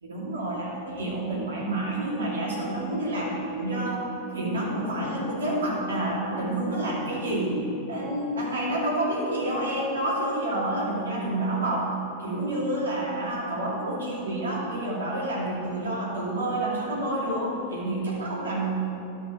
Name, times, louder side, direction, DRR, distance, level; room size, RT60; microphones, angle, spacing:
voice 1, 0.0-7.6 7.9-11.9 12.2-18.7, right 1 dB, 70° right, -4 dB, 2.4 m, -28 dB
11.5 x 6.2 x 4.8 m, 2.9 s
figure-of-eight pair, 90°, 0 cm